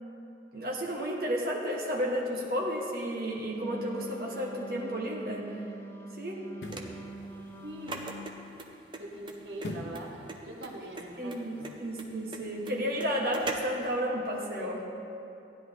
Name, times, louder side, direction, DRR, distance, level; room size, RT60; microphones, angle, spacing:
voice 1, 0.5-5.5 6.2-6.4 11.2-14.8, equal, 55° right, -2 dB, 1.4 m, -32 dB
Wind instrument woodwind instrument, 3.5-8.3, right 1 dB, 15° left, 0.6 m, -43 dB
sound 1, 6.5-7.0 9.6-10.1 10.5-10.6, left 1 dB, 85° left, 1.0 m, -39 dB
sound 2, 6.7-13.9, right 2 dB, 25° right, 0.7 m, -41 dB
voice 2, 7.6-8.0 9.0-10.2 10.4-11.8, right 1 dB, 85° right, -1 dB, 1.3 m, -42 dB
15.5 x 10.5 x 3.6 m, 2.8 s
head